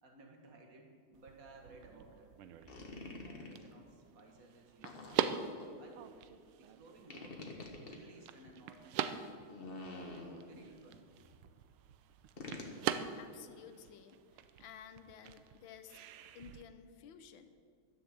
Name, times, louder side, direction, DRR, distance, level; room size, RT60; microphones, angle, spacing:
voice 1, 0.0-2.3 3.0-5.1 5.5-6.2 6.6-7.6 7.9-9.5 10.0-11.1, right 2 dB, 45° right, 2 dB, 2.0 m, -58 dB
sound 1, 1.1-16.6, right 9 dB, 80° right, 1.5 m, -43 dB
sound 2, 2.7-3.7 4.8-5.7 7.1-8.0 9.4-10.7 12.4-12.8, left 2 dB, 30° left, 1.4 m, -47 dB
voice 2, 13.1-16.0 16.3-17.6, left 8 dB, 70° left, 10 dB, 1.5 m, -54 dB
11.5 x 10.0 x 7.7 m, 2.1 s
omnidirectional pair, 2.3 m